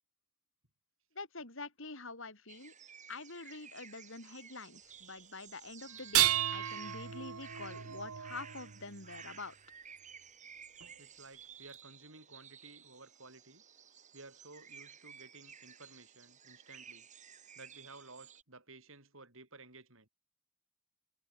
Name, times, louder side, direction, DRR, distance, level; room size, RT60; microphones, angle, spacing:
voice 1, 1.1-2.7 3.1-9.5, left 3 dB, 60° left, 5.0 m, -46 dB
sound 1, 2.5-18.4, right 7 dB, 35° right, 7.1 m, -54 dB
sound 2, 6.0-9.2 10.8-10.9 11.7-11.8, right 13 dB, 90° right, 1.0 m, -33 dB
voice 2, 11.0-13.6 14.1-17.1 17.6-20.1, right 3 dB, 65° right, 5.4 m, -55 dB
head